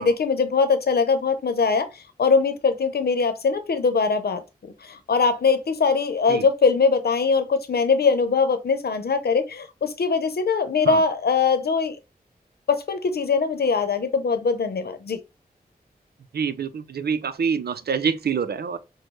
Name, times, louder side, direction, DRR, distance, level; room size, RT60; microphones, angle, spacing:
voice 1, 0.0-1.9 2.2-12.0 12.7-15.2, left 4 dB, 85° left, 0.8 m, -22 dB
voice 2, 16.3-18.8, right 6 dB, 80° right, 0.6 m, -26 dB
6.2 x 2.2 x 3.2 m
cardioid pair, 55°, 16 cm